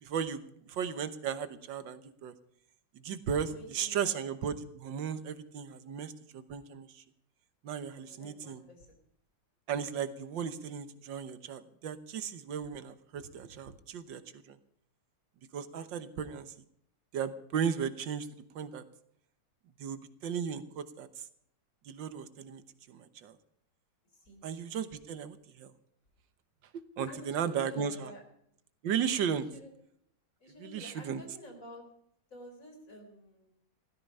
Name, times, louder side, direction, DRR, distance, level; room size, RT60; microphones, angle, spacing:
voice 1, 0.0-2.3 2.9-7.0 7.6-8.6 9.7-14.6 15.5-16.5 17.1-18.3 18.6-18.8 19.8-21.3 21.9-22.6 22.9-23.4 24.4-25.7 26.7-28.1 28.8-29.5 30.6-31.4, right 7 dB, 85° right, 12 dB, 1.8 m, -36 dB
voice 2, 3.4-4.1 7.9-8.9 24.2-24.4 27.1-28.2 29.5-29.7 30.4-31.8 32.3-33.5, equal, 45° left, 3 dB, 4.3 m, -50 dB
16.5 x 14.0 x 5.5 m, 0.69 s
omnidirectional pair, 2.0 m